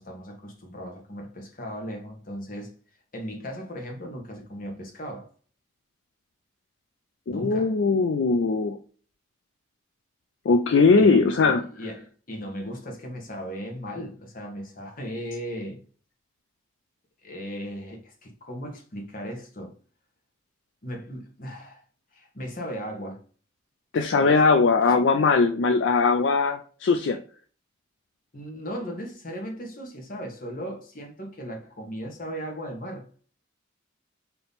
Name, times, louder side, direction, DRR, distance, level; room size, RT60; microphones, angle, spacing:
voice 1, 0.0-2.7 3.1-5.3 7.3-7.7 11.0-15.8 17.2-19.7 20.8-21.8 22.1-23.2 24.1-24.4 24.9-25.0 28.3-33.1, equal, 45° left, 1.1 m, -37 dB
voice 2, 7.3-8.8 10.5-11.6 23.9-27.2, left 4 dB, 65° left, 0.4 m, -20 dB
3.5 x 2.9 x 4.0 m
head